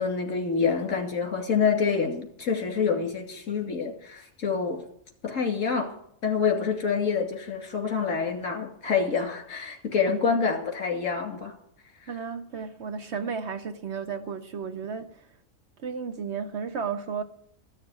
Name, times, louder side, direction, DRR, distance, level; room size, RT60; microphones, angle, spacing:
voice 1, 0.0-4.8 5.2-5.9 6.2-11.5, left 5 dB, 65° left, 2.8 m, -27 dB
voice 2, 12.1-15.3 15.8-17.2, right 6 dB, 55° right, 1.0 m, -33 dB
14.0 x 6.7 x 9.6 m
omnidirectional pair, 1.5 m